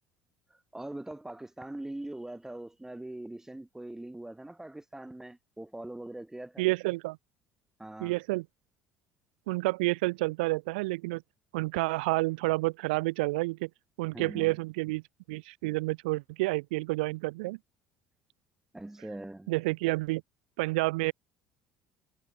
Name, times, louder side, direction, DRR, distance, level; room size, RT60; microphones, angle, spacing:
voice 1, 0.5-6.7 7.8-8.1 14.1-14.5 18.7-19.5, right 1 dB, 10° right, 4.7 m, -42 dB
voice 2, 6.6-7.2 8.0-8.4 9.5-11.2 11.5-13.7 14.0-15.0 15.3-17.6 19.5-20.2 20.6-21.1, right 23 dB, 75° right, 0.9 m, -29 dB
hypercardioid pair, 60°, 5 cm